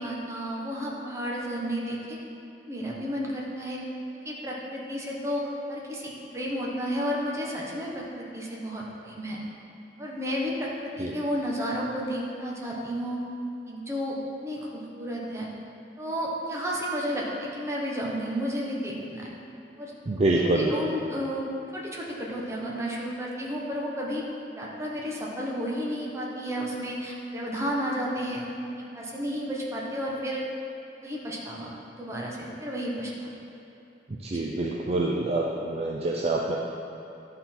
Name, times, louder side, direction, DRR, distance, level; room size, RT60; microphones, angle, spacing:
voice 1, 0.0-2.2 2.6-3.9 4.2-9.4 10.0-13.2 13.7-15.5 16.0-19.3 19.8-19.9 20.3-21.5 21.7-24.3 24.5-28.5 28.8-30.5 31.0-33.3 34.3-34.5, equal, 15° right, -4 dB, 1.1 m, -32 dB
voice 2, 20.1-20.7 34.2-36.6, right 2 dB, 35° right, -2 dB, 0.5 m, -26 dB
11.0 x 3.9 x 4.3 m, 2.9 s
head